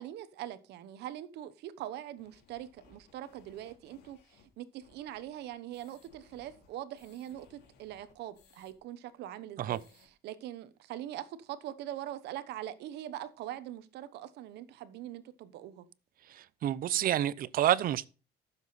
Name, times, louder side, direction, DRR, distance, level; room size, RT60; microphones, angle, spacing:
voice 1, 0.0-9.8 10.2-15.9, right 12 dB, 80° right, 1.1 m, -42 dB
sound 1, 2.2-8.7 9.1-9.2 9.5-10.1, left 5 dB, 85° left, 3.4 m, -63 dB
voice 2, 16.3-18.1, right 11 dB, 60° right, 0.7 m, -29 dB
13.5 x 7.3 x 4.2 m
cardioid pair, 110°, 17 cm